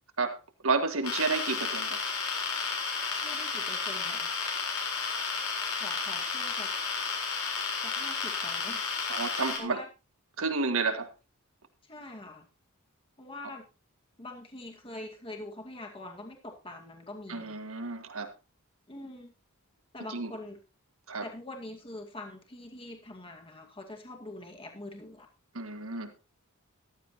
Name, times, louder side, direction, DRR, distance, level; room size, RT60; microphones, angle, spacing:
voice 1, 0.6-2.0 9.1-9.8 10.4-11.1 17.3-18.3 20.1-20.3 21.1-21.3 25.5-26.1, right 4 dB, 70° right, 7 dB, 1.8 m, -30 dB
sound 1, 1.0-9.6, left 5 dB, 85° left, 3.9 m, -32 dB
voice 2, 3.1-4.3 5.7-6.7 7.8-9.0 9.6-9.9 11.9-12.5 13.2-13.7 14.2-17.6 18.9-19.3 19.9-20.6 21.2-25.3, left 2 dB, 25° left, 2 dB, 2.3 m, -44 dB
14.5 x 12.0 x 2.9 m, 0.29 s
head